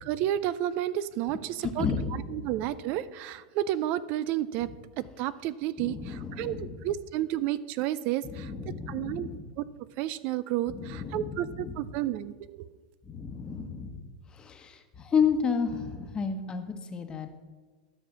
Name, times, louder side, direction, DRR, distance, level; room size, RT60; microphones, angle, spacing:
voice 1, 0.0-1.9 2.1-4.7 5.0-8.5 8.9-9.3 9.6-9.7 10.0-12.7, right 12 dB, 50° right, 17 dB, 0.4 m, -31 dB
voice 2, 1.6-2.5 4.6-4.7 5.8-6.8 8.2-9.5 10.7-11.8 13.0-14.0 14.3-17.3, left 6 dB, 25° left, 6 dB, 1.1 m, -32 dB
12.0 x 5.5 x 6.0 m, 1.4 s
hypercardioid pair, 110°, 4 cm